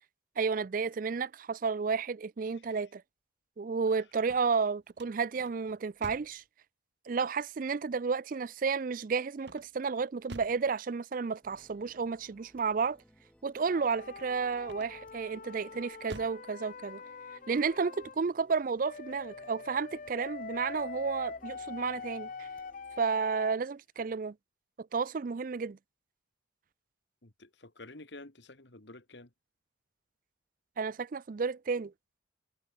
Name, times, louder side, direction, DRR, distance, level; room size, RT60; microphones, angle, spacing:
voice 1, 0.4-3.0 3.6-6.4 7.1-13.0 13.4-17.0 17.5-22.5 23.0-24.3 24.8-25.8 30.8-31.9, right 5 dB, 45° right, 0.4 m, -32 dB
sound 1, 4.1-6.4 9.4-10.7 14.6-15.2 15.7-16.5, right 1 dB, 60° right, 5.7 m, -49 dB
sound 2, 11.4-23.1, equal, 5° left, 5.5 m, -63 dB
sound 3, 13.6-18.2 18.8-23.6, left 5 dB, 40° left, 0.5 m, -44 dB
voice 2, 27.2-29.3, left 2 dB, 65° left, 2.3 m, -50 dB
head